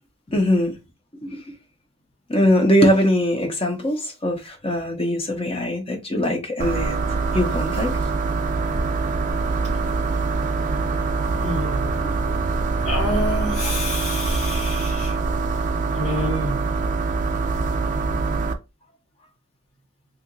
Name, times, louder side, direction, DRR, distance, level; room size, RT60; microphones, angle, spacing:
voice 1, 0.3-0.7 1.2-1.4 2.3-7.9, equal, 25° left, 0.7 m, -21 dB
sound 1, 6.6-18.5, right 4 dB, 35° right, 0.4 m, -24 dB
voice 2, 11.4-11.9 12.8-15.2 15.9-16.7, equal, 75° left, 1.5 m, -28 dB
2.8 x 2.5 x 3.8 m
head